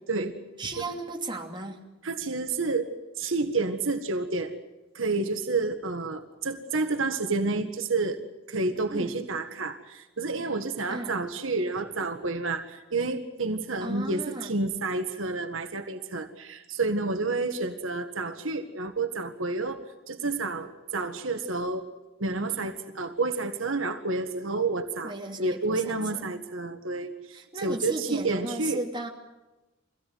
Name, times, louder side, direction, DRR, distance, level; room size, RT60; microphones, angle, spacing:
voice 1, 0.6-1.8 8.9-9.1 10.9-11.1 13.8-14.5 25.0-26.2 27.3-29.1, right 2 dB, 25° right, 1 dB, 2.8 m, -35 dB
voice 2, 2.0-4.5 4.9-8.2 8.5-21.9 22.2-28.8, right 3 dB, 75° right, 6 dB, 1.8 m, -30 dB
25.0 x 17.0 x 9.6 m, 1.1 s
head